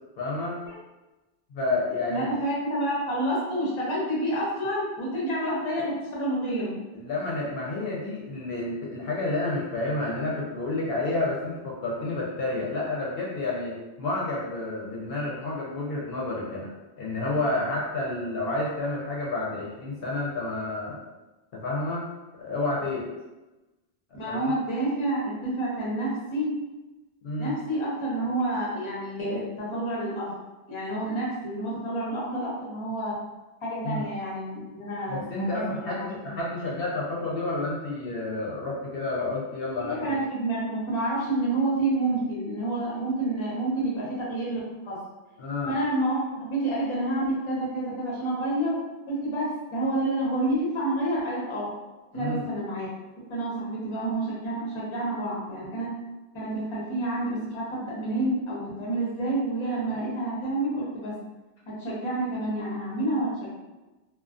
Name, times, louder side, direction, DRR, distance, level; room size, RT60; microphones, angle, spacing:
voice 1, 0.2-0.6 1.5-2.3 6.9-16.7 17.0-21.0 21.5-22.1 22.4-23.1 24.1-24.6 27.2-27.5 33.8-34.0 35.1-40.0 45.4-45.8 52.1-52.5, left 2 dB, 70° left, -4 dB, 0.7 m, -30 dB
voice 2, 2.1-6.7 24.1-26.5 27.4-30.3 30.7-33.1 33.6-36.1 39.7-44.6 44.8-45.0 45.7-48.7 49.1-51.7 52.1-52.9 53.3-55.9 56.3-61.1 61.7-63.5, right 1 dB, 35° left, -5 dB, 0.7 m, -29 dB
2.4 x 2.3 x 2.3 m, 1.1 s
omnidirectional pair, 1.0 m